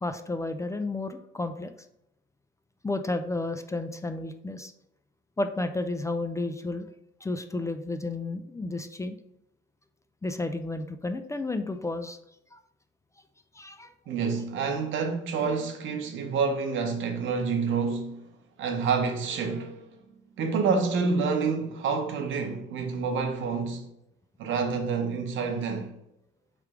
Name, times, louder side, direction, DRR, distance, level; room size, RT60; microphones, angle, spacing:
voice 1, 0.0-1.7 2.8-4.7 5.4-6.9 7.2-9.2 10.2-12.2 12.5-12.6 13.5-13.9, left 2 dB, 15° left, 0.3 m, -32 dB
voice 2, 14.1-18.3 18.6-20.0 20.4-23.9 24.4-25.9, right 5 dB, 75° right, 0.9 m, -28 dB
3.3 x 3.2 x 4.8 m
cardioid pair, 90°, 20 cm